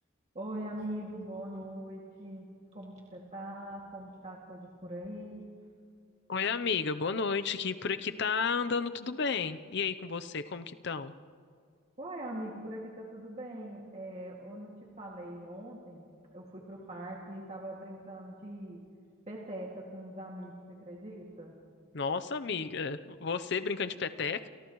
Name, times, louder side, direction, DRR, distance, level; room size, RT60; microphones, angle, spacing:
voice 1, 0.3-2.5 2.7-5.5 12.0-18.8 19.3-21.6, right 1 dB, 35° right, -3 dB, 2.2 m, -42 dB
voice 2, 6.3-11.1 21.9-24.5, left 5 dB, 55° left, 11 dB, 0.7 m, -32 dB
29.5 x 29.0 x 3.1 m, 2.2 s
head